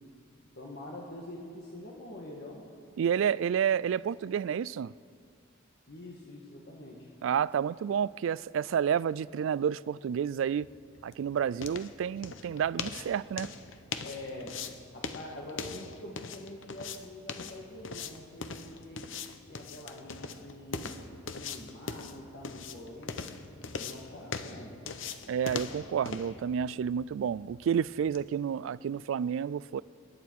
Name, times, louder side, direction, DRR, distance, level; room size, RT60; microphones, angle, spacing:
voice 1, 0.5-2.6 5.9-7.1 14.0-14.6 14.9-19.1 19.5-21.0 21.3-23.5 23.8-24.8, left 1 dB, 55° left, 1.7 m, -45 dB
voice 2, 3.0-4.9 7.2-10.7 11.0-13.5 25.3-29.8, right 8 dB, 75° right, 0.3 m, -30 dB
sound 1, 10.5-28.3, left 5 dB, 75° left, 0.8 m, -41 dB
26.5 x 11.0 x 4.7 m
head